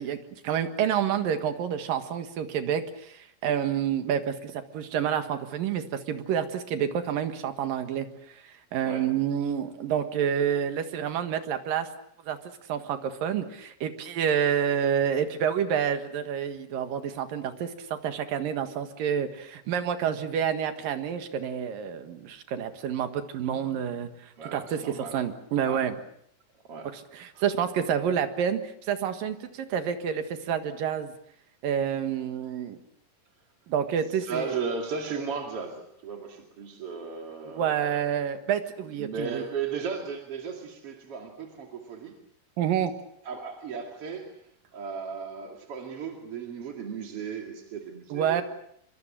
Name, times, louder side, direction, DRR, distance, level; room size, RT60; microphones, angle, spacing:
voice 1, 0.0-8.1 8.4-11.9 12.3-12.4 12.7-25.9 26.9-31.1 31.6-32.8 33.7-34.6 37.6-39.4 42.6-43.0 48.1-48.4, right 8 dB, 60° right, 8 dB, 2.7 m, -28 dB
voice 2, 24.4-25.2 25.6-25.9 26.6-26.9 27.3-27.7 34.1-38.1 39.0-42.2 43.2-48.4, right 5 dB, 40° right, 3 dB, 2.3 m, -36 dB
26.0 x 24.5 x 7.6 m, 0.69 s
omnidirectional pair, 5.6 m